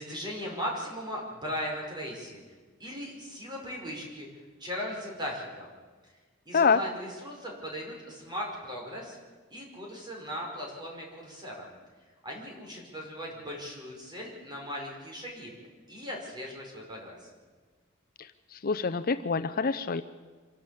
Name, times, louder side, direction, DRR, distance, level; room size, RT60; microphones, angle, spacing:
voice 1, 0.0-2.4 2.8-5.7 6.0-6.1 6.5-9.2 9.5-11.7 12.2-15.5 15.9-17.3, equal, 20° right, -1 dB, 5.3 m, -38 dB
voice 2, 18.5-20.0, left 5 dB, 45° left, 10 dB, 0.6 m, -26 dB
26.5 x 12.0 x 8.5 m, 1.4 s
head